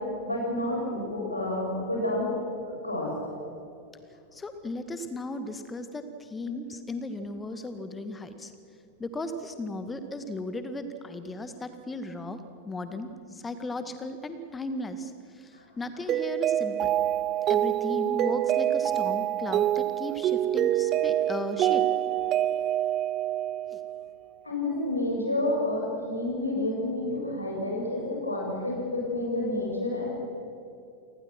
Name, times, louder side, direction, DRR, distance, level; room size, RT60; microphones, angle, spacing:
voice 1, 0.2-2.3 2.6-3.1 24.4-30.1, left 1 dB, 85° left, -2 dB, 7.3 m, -29 dB
voice 2, 4.3-8.5 9.0-16.9 17.5-21.8 23.7-23.8, left 2 dB, 15° left, 10 dB, 2.0 m, -36 dB
Mallet percussion, 16.1-24.2, right 12 dB, 35° right, 0.4 m, -26 dB
28.5 x 19.5 x 6.1 m, 2.7 s
figure-of-eight pair, 90°, 0 cm